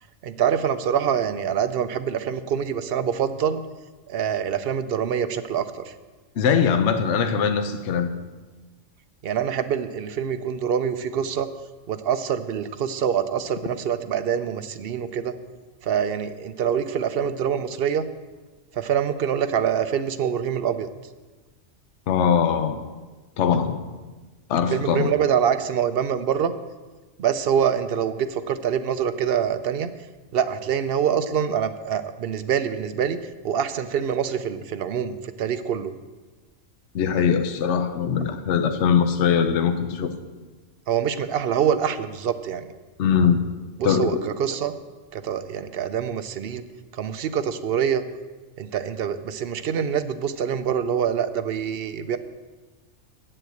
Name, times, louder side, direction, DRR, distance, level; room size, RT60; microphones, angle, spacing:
voice 1, 0.2-3.6 4.1-5.9 9.2-11.5 11.9-15.3 15.8-18.1 18.7-20.9 24.7-26.5 27.2-29.9 30.3-33.2 33.4-35.9 40.9-42.7 43.8-44.7 45.1-46.6 46.9-48.0 48.6-52.2, right 8 dB, 55° right, 11 dB, 0.8 m, -25 dB
voice 2, 6.4-8.1 22.1-22.8 23.4-23.8 24.5-25.1 36.9-40.1 43.0-43.4 43.8-44.1, left 7 dB, 65° left, 8 dB, 1.0 m, -21 dB
8.6 x 7.7 x 7.8 m, 1.3 s
omnidirectional pair, 1.3 m